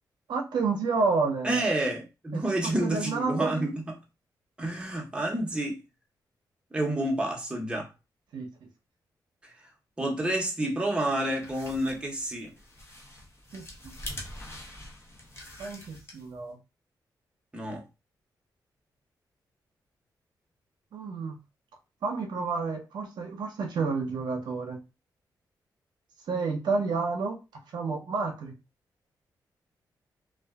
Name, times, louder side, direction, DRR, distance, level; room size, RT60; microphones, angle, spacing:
voice 1, 0.3-1.6 2.3-3.7 8.3-8.5 13.5-13.9 15.6-16.6 20.9-21.4 22.0-24.8 26.3-27.4 27.7-28.5, right 4 dB, 75° right, 0.6 m, -30 dB
voice 2, 1.4-3.7 4.6-5.8 6.7-7.9 10.0-12.5 17.5-17.8, right 1 dB, 15° right, 0.7 m, -29 dB
sound 1, 10.9-16.5, left 1 dB, 35° left, 0.8 m, -45 dB
2.5 x 2.2 x 2.2 m
cardioid pair, 95°, 8 cm